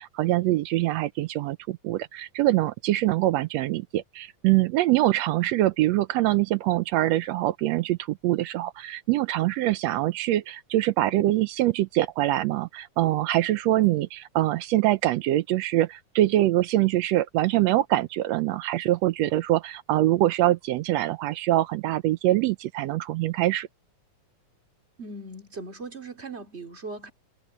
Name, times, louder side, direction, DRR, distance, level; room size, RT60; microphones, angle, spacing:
voice 1, 0.0-23.7, right 15 dB, 80° right, 1.5 m, -24 dB
voice 2, 25.0-27.1, right 3 dB, 20° right, 2.7 m, -39 dB
omnidirectional pair, 3.6 m